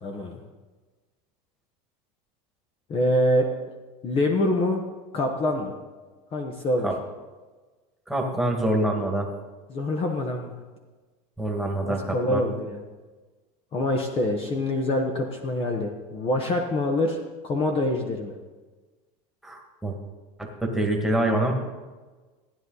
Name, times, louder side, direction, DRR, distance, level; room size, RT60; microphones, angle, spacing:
voice 1, 0.0-0.4 2.9-3.5 4.0-4.8 5.1-5.7 6.3-6.9 9.7-10.5 11.8-12.8 13.7-18.3, left 1 dB, 30° left, 2 dB, 1.2 m, -25 dB
voice 2, 8.1-9.3 11.4-12.4 19.4-20.0 20.4-21.5, right 1 dB, ahead, 0 dB, 1.9 m, -25 dB
16.0 x 9.7 x 4.0 m, 1.3 s
supercardioid pair, 140°, 19 cm